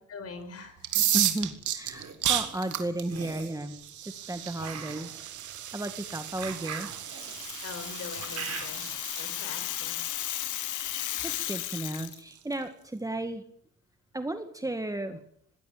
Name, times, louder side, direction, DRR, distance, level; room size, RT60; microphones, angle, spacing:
voice 1, 0.1-1.0 2.2-2.4 7.6-8.8 9.2-10.0, left 4 dB, 55° left, 10 dB, 5.5 m, -43 dB
sound 1, 0.8-12.5, right 11 dB, 75° right, 2.6 m, -34 dB
voice 2, 1.1-3.8 4.0-5.2 5.7-6.9 11.2-13.4 14.1-15.2, right 1 dB, 10° right, 8 dB, 1.9 m, -34 dB
sound 2, 1.7-2.1 3.0-3.6 4.6-9.0, right 7 dB, 55° right, 4.4 m, -41 dB
Rattle (instrument), 7.0-12.2, left 14 dB, 80° left, 1.1 m, -35 dB
20.0 x 16.5 x 8.9 m, 0.64 s
cardioid pair, 90°, 30 cm